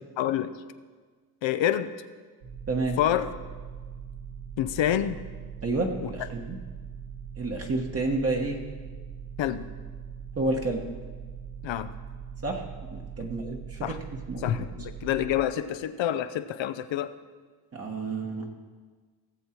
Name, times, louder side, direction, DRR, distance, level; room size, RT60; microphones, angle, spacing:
voice 1, 0.2-0.6 1.4-1.9 3.0-3.3 4.6-5.2 6.0-6.1 9.4-9.7 11.6-11.9 13.2-13.3 13.8-14.0 14.4-17.1, left 11 dB, 70° left, 12 dB, 0.8 m, -27 dB
sound 1, 2.4-15.4, right 7 dB, 85° right, 1.8 m, -41 dB
voice 2, 2.7-3.0 5.6-6.6 7.4-8.6 10.4-10.8 12.4-12.6 12.9-14.0 14.3-14.6 17.7-18.5, right 2 dB, 30° right, 1 dB, 1.3 m, -30 dB
17.5 x 7.3 x 4.4 m, 1.5 s
cardioid pair, 105°, 47 cm